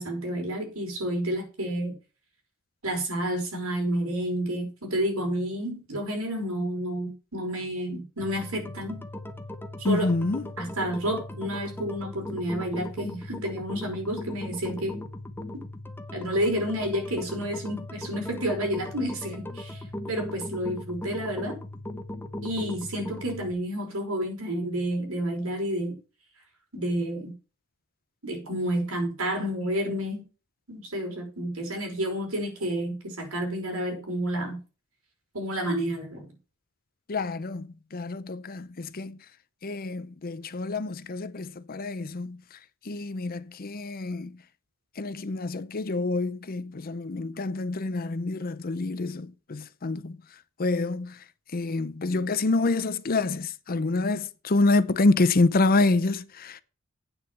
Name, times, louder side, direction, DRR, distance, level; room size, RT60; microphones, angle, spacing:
voice 1, 0.0-2.0 2.8-9.0 9.8-10.1 10.6-15.0 16.1-21.6 22.4-26.0 26.7-27.3 28.2-30.3 30.7-34.6 35.3-36.3, right 1 dB, 80° right, 5.2 m, -30 dB
sound 1, 8.2-23.5, left 1 dB, 10° left, 0.9 m, -38 dB
voice 2, 9.8-10.4 37.1-39.2 39.6-42.4 42.9-44.3 45.0-50.2 50.6-51.2 51.5-56.6, left 3 dB, 45° left, 0.6 m, -27 dB
8.9 x 6.6 x 6.8 m
head